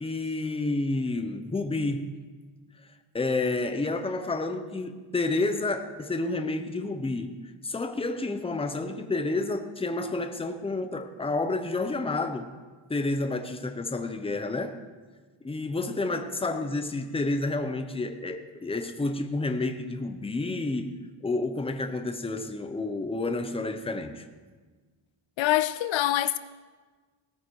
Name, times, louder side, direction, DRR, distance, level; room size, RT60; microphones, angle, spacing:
voice 1, 0.0-2.1 3.1-7.3 7.6-12.5 12.9-14.8 15.4-20.9 21.2-24.2, left 2 dB, 10° left, 0.9 m, -30 dB
voice 2, 25.4-26.4, left 14 dB, 70° left, 0.6 m, -24 dB
17.5 x 14.5 x 4.7 m
cardioid pair, 145°, 49 cm